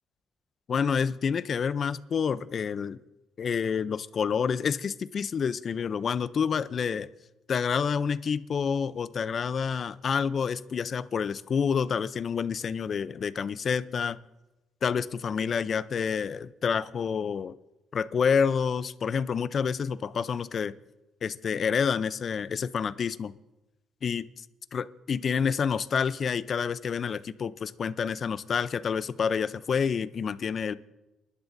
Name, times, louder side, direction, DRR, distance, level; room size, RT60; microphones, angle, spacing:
voice 1, 0.7-3.0 3.4-7.1 7.5-14.2 14.8-17.6 17.9-20.7 21.2-23.3 24.0-24.4 24.7-30.7, left 6 dB, 50° left, 15 dB, 0.5 m, -28 dB
29.5 x 11.5 x 2.6 m, 1.0 s
cardioid pair, 90°, 0 cm